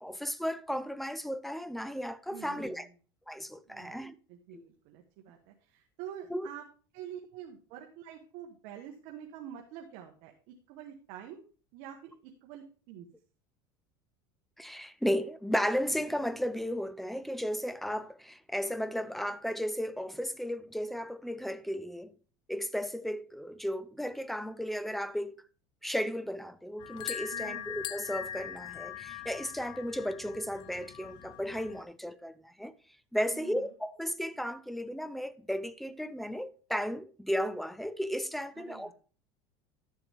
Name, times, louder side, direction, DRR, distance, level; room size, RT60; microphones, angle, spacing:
voice 1, 0.0-2.9 3.3-4.1 4.5-4.6 6.3-6.5 14.6-22.1 22.5-25.4 25.8-32.7 33.1-38.9, equal, ahead, 0.4 m, -34 dB
voice 2, 2.3-2.9 3.6-4.0 4.3-6.6 6.9-11.4 11.7-13.1 27.3-27.8 33.3-33.7 38.5-38.9, right 10 dB, 65° right, 1.2 m, -47 dB
sound 1, 26.8-31.8, left 10 dB, 45° left, 0.6 m, -41 dB
12.0 x 6.9 x 3.5 m
cardioid pair, 145°, 11 cm